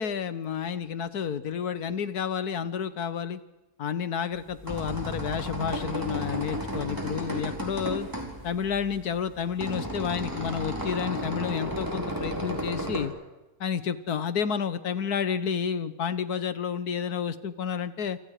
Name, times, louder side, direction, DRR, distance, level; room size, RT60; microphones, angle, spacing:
voice 1, 0.0-3.4 3.8-8.1 8.4-13.1 13.6-18.2, left 7 dB, 80° left, 13 dB, 1.7 m, -30 dB
sound 1, 4.3-13.1, equal, 10° right, 4.1 m, -33 dB
28.0 x 27.0 x 4.9 m, 1.0 s
omnidirectional pair, 1.6 m